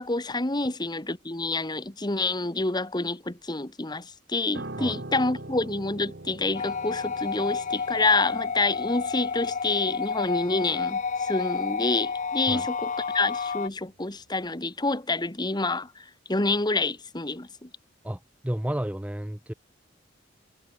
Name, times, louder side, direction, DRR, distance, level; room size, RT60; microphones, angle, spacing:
voice 1, 0.0-17.7, left 3 dB, 25° left, 1.5 m, -28 dB
Piano, 4.5-13.9 14.2-14.5, right 2 dB, 60° right, 2.4 m, -44 dB
sound 1, 6.5-13.7, left 5 dB, 40° left, 0.6 m, -30 dB
voice 2, 18.0-19.5, equal, 10° right, 0.7 m, -32 dB
head